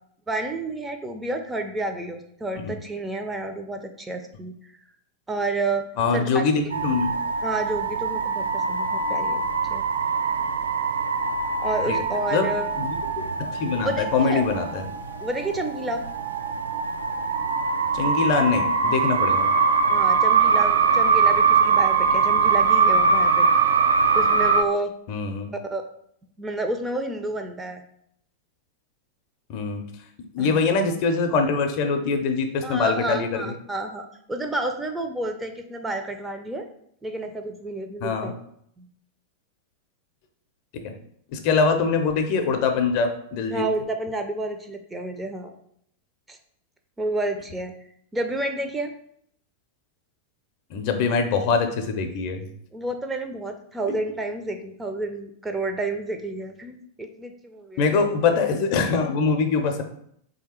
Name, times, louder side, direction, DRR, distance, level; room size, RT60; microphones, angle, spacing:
voice 1, 0.3-4.5 5.3-5.8 6.1-6.4 7.4-9.4 9.7-9.8 11.6-12.7 13.8-14.4 15.2-16.0 19.9-23.5 24.1-24.9 25.7-25.8 26.4-27.8 30.4-30.6 32.6-36.7 37.0-38.3 38.8-38.9 43.5-45.6 46.3-46.4 47.0-47.7 48.1-48.9 52.7-58.0, right 2 dB, 10° right, 5 dB, 0.5 m, -30 dB
voice 2, 6.0-7.1 11.9-12.0 12.3-12.5 12.8-13.0 13.4-14.8 17.9-19.5 25.1-25.5 29.5-29.8 30.3-33.5 38.0-38.3 40.8-40.9 41.3-43.6 50.7-52.5 53.9-54.0 57.8-59.8, left 4 dB, 45° left, 6 dB, 0.6 m, -23 dB
sound 1, 6.7-24.6, right 5 dB, 70° right, 0.4 m, -22 dB
3.4 x 2.7 x 4.2 m, 0.68 s
figure-of-eight pair, 90°, 0 cm